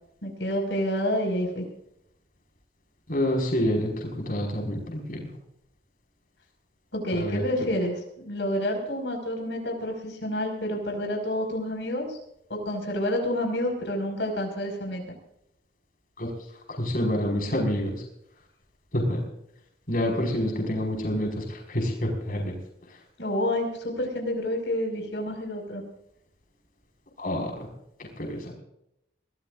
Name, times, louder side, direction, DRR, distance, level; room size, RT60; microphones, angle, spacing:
voice 1, 0.2-1.6 6.9-12.2 12.5-15.0 23.2-25.8, left 1 dB, 90° left, 2 dB, 5.6 m, -29 dB
voice 2, 3.1-5.2 7.1-7.4 16.2-16.3 16.7-18.0 18.9-19.2 19.9-22.6 27.2-27.5 28.0-28.5, left 1 dB, 55° left, 1 dB, 5.3 m, -27 dB
23.5 x 19.0 x 2.6 m, 0.78 s
head